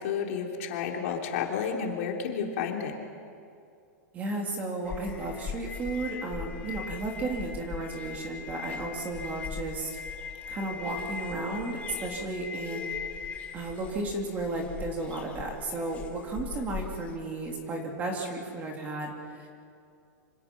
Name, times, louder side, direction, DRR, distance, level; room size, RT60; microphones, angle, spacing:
voice 1, 0.0-2.9, left 7 dB, 45° left, 1 dB, 3.0 m, -31 dB
voice 2, 4.1-9.9 10.5-13.0 13.5-19.5, right 2 dB, 15° right, 1 dB, 2.5 m, -34 dB
sound 1, 4.8-17.1, left 6 dB, 15° left, 1.4 m, -39 dB
26.5 x 26.0 x 5.9 m, 2.4 s
supercardioid pair, 175°, 10 cm